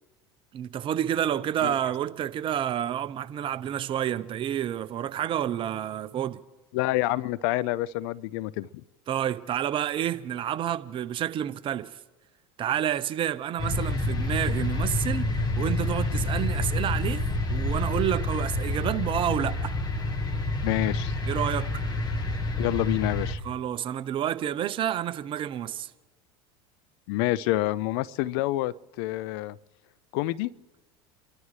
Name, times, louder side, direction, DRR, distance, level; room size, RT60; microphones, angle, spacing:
voice 1, 0.5-6.4 9.1-12.0 12.6-15.3 15.6-19.7 21.2-21.7 23.4-25.9, right 10 dB, 40° right, 0.8 m, -29 dB
voice 2, 6.7-8.7 20.6-21.1 22.6-23.4 27.1-29.6 30.1-30.5, left 17 dB, 65° left, 0.4 m, -27 dB
sound 1, 13.6-23.4, left 2 dB, 30° left, 1.6 m, -28 dB
30.0 x 13.0 x 3.3 m
hypercardioid pair, 95°, 14 cm